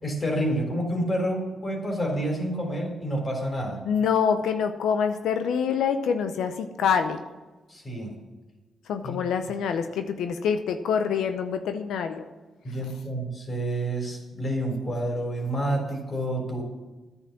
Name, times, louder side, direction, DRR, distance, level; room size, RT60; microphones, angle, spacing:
voice 1, 0.0-3.8 7.7-8.1 9.0-9.2 12.6-16.6, right 1 dB, 40° left, 2 dB, 3.9 m, -28 dB
voice 2, 3.9-7.2 8.9-12.2, left 7 dB, 85° left, 8 dB, 0.6 m, -26 dB
10.0 x 7.2 x 7.3 m, 1.2 s
supercardioid pair, 60°, 0 cm